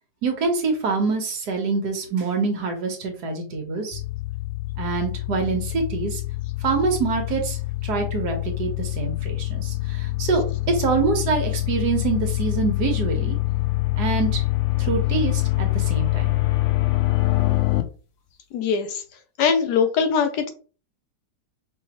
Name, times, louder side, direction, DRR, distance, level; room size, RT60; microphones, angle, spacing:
voice 1, 0.2-4.0 4.8-6.2 6.6-13.4 14.0-14.4 14.8-16.3, right 4 dB, 65° right, 1.5 m, -25 dB
sound 1, 3.9-17.8, left 18 dB, 90° left, 0.6 m, -25 dB
voice 2, 18.5-19.0 19.4-20.5, left 6 dB, 70° left, 1.1 m, -21 dB
5.4 x 3.1 x 2.9 m
omnidirectional pair, 1.9 m